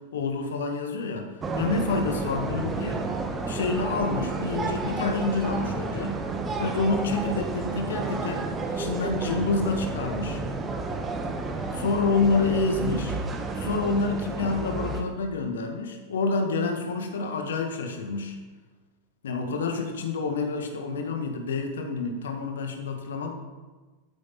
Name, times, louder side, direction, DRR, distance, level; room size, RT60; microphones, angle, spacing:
voice 1, 0.1-3.0 3.4-6.2 6.6-10.4 11.7-13.2 13.6-18.4 19.2-23.3, left 3 dB, 65° left, 4 dB, 1.8 m, -28 dB
sound 1, 1.4-15.0, right 3 dB, 20° right, 1.3 m, -31 dB
12.5 x 8.7 x 4.3 m, 1.3 s
figure-of-eight pair, 90°, 0 cm